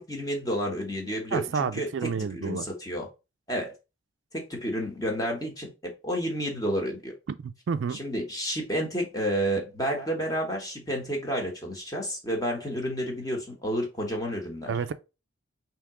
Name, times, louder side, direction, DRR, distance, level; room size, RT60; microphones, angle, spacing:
voice 1, 0.0-3.1 3.5-3.7 4.3-7.1 7.9-14.7, equal, 20° left, 1.1 m, -30 dB
voice 2, 1.3-2.7 7.4-8.0 14.7-14.9, right 6 dB, 65° right, 0.3 m, -30 dB
3.5 x 2.9 x 4.8 m
head